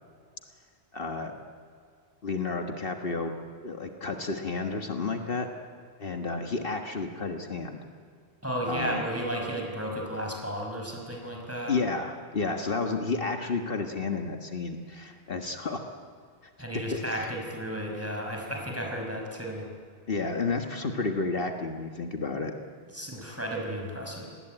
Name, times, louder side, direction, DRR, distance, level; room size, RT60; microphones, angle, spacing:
voice 1, 0.9-1.3 2.2-3.3 3.6-5.5 6.0-7.8 8.7-9.0 11.7-15.9 16.9-17.3 20.1-22.5, left 3 dB, 60° left, 4 dB, 1.6 m, -31 dB
voice 2, 8.4-11.7 16.6-19.7 22.9-24.3, equal, 15° right, 0 dB, 5.6 m, -33 dB
28.0 x 19.5 x 9.1 m, 2.2 s
omnidirectional pair, 1.1 m